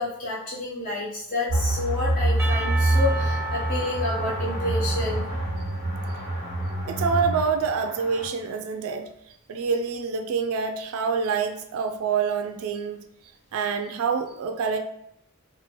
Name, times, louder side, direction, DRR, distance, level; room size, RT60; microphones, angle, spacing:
voice 1, 0.0-5.2, left 2 dB, 35° left, -6 dB, 0.6 m, -29 dB
sound 1, 1.5-8.3, right 1 dB, 75° left, 1.5 m, -26 dB
Percussion / Church bell, 2.4-6.3, right 1 dB, 10° right, 0.5 m, -35 dB
voice 2, 6.9-9.1 9.5-13.0 13.5-14.8, right 5 dB, 75° right, 6 dB, 0.3 m, -26 dB
3.1 x 2.3 x 2.9 m, 0.73 s
head